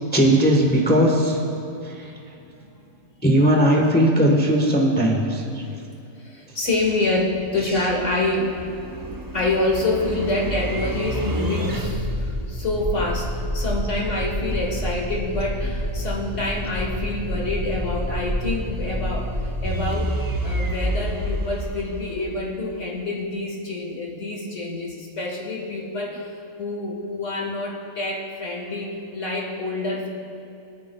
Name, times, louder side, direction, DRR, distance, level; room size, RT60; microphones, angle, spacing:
voice 1, 0.1-1.4 1.8-1.9 3.2-5.4, equal, 10° left, 0 dB, 0.9 m, -18 dB
voice 2, 6.2-8.5 9.3-20.1 20.4-26.3 26.6-30.1, left 2 dB, 55° left, -1 dB, 1.7 m, -27 dB
sound 1, 6.7-22.7, equal, 30° right, 0.4 m, -28 dB
23.0 x 9.5 x 2.3 m, 2.8 s
omnidirectional pair, 1.5 m